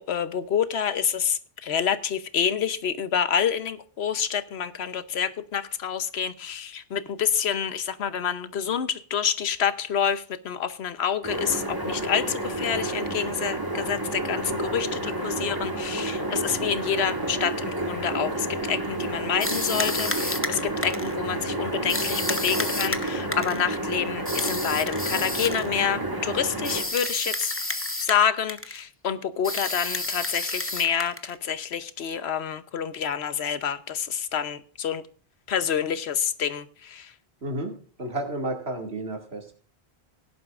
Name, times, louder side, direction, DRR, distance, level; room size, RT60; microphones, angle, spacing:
voice 1, 0.0-27.5 28.0-35.0 35.5-37.1, left 8 dB, 85° left, 1.1 m, -28 dB
sound 1, 11.2-26.8, right 1 dB, 20° right, 1.7 m, -30 dB
sound 2, 19.4-21.1 21.9-23.6 24.2-25.7 26.6-28.2 28.5-28.8 29.4-31.3, left 2 dB, 15° left, 0.8 m, -30 dB
voice 2, 37.4-37.7 38.0-39.5, right 1 dB, 80° right, 2.6 m, -31 dB
17.0 x 11.0 x 2.5 m
omnidirectional pair, 1.1 m